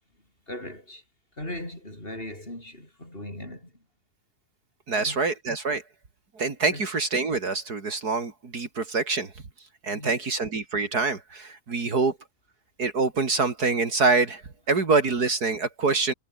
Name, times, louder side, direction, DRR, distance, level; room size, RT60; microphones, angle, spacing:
voice 1, 0.5-1.0 1.4-3.7 4.9-5.2 6.7-6.9 9.9-10.3 11.8-12.0, left 1 dB, 30° left, 8.1 m, -39 dB
voice 2, 4.9-5.8 6.4-9.3 9.8-12.2 12.8-14.4 14.7-16.1, right 4 dB, 65° right, 3.3 m, -25 dB
omnidirectional pair, 1.8 m